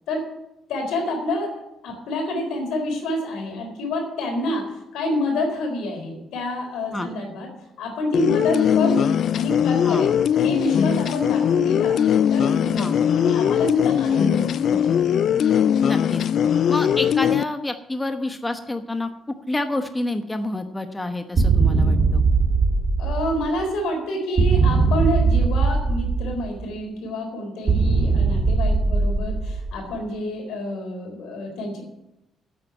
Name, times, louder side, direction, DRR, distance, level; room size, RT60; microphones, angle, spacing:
voice 1, 0.7-1.5 1.8-7.5 7.8-12.0 12.3-15.1 23.0-31.8, left 1 dB, 85° left, 3 dB, 4.1 m, -28 dB
sound 1, 8.1-17.4, left 9 dB, 65° left, 0.3 m, -20 dB
voice 2, 15.8-16.2 16.7-22.2, left 2 dB, 15° left, 7 dB, 1.0 m, -28 dB
sound 2, 21.4-23.7 24.4-26.7 27.7-29.9, right 4 dB, 45° right, 2.2 m, -20 dB
8.7 x 8.5 x 9.4 m, 0.89 s
cardioid pair, 90°, 0 cm